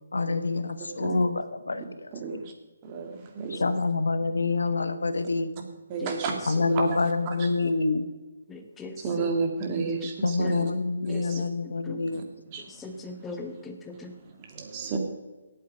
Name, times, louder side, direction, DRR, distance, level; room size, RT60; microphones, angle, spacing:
voice 1, 0.1-2.4 3.5-5.5 6.5-8.0 10.2-12.2, left 3 dB, 85° left, 10 dB, 1.2 m, -27 dB
voice 2, 2.2-2.5 2.8-3.6 5.9-7.5 9.0-10.6 11.1-11.5 12.1-12.2 12.5-12.8 14.2-15.0, right 4 dB, 30° right, 3 dB, 2.1 m, -32 dB
voice 3, 8.5-9.3 10.4-10.6 11.1-12.0 12.7-14.1, left 3 dB, 10° left, 4 dB, 1.2 m, -40 dB
17.0 x 8.0 x 5.1 m, 1.2 s
hypercardioid pair, 155°, 0 cm